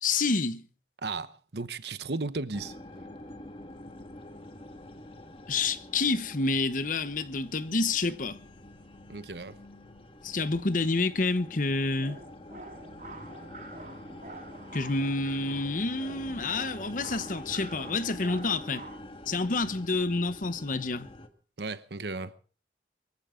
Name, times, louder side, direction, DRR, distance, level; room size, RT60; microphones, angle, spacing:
voice 1, 0.0-0.7 5.5-8.4 10.2-12.2 14.7-18.8 19.3-21.1, left 3 dB, 50° left, 0.9 m, -28 dB
voice 2, 1.0-2.7 9.1-9.6 21.6-22.4, right 3 dB, 70° right, 1.0 m, -35 dB
sound 1, 2.5-21.3, left 1 dB, 30° left, 1.5 m, -46 dB
sound 2, 12.0-19.0, right 2 dB, 45° right, 3.7 m, -47 dB
23.5 x 14.5 x 3.8 m
head